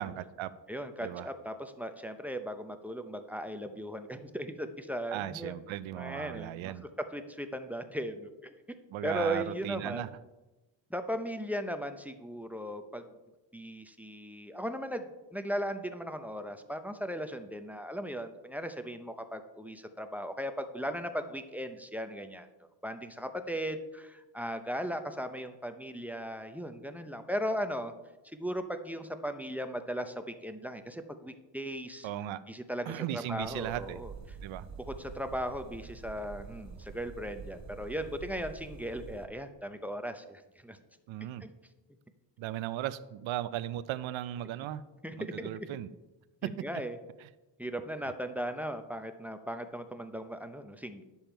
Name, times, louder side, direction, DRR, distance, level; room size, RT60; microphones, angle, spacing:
voice 1, 0.0-0.5 1.0-1.3 5.1-6.9 8.9-10.1 32.0-32.4 32.9-34.0 34.4-34.7 41.1-41.5 42.4-44.8 45.2-45.9 46.4-46.8 47.2-47.3, right 12 dB, 75° right, 14 dB, 0.6 m, -37 dB
voice 2, 0.7-5.5 6.0-6.7 7.1-8.5 9.0-10.0 10.9-13.1 13.5-15.1 15.3-22.5 22.8-27.9 28.3-32.1 32.5-34.1 34.9-40.8 41.4-41.5 45.0-45.7 46.4-46.9 47.6-51.0, equal, 5° right, 8 dB, 0.6 m, -37 dB
sound 1, 33.4-39.3, right 5 dB, 35° right, 0.7 m, -47 dB
10.5 x 7.1 x 4.5 m, 1.1 s
cardioid pair, 120°, 48 cm